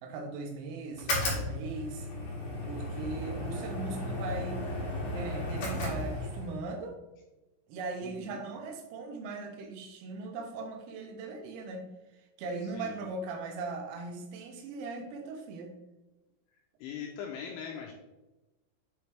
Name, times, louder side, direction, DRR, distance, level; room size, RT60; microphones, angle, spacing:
voice 1, 0.0-2.1 2.6-4.6 5.2-7.0 7.7-15.8, right 3 dB, 90° right, 3 dB, 3.7 m, -39 dB
sound 1, 0.9-6.6, left 1 dB, 60° left, 2.0 m, -34 dB
voice 2, 8.0-8.4 12.7-13.0 16.8-17.9, left 7 dB, 85° left, 1 dB, 2.7 m, -41 dB
8.8 x 3.2 x 3.4 m, 1.0 s
omnidirectional pair, 5.9 m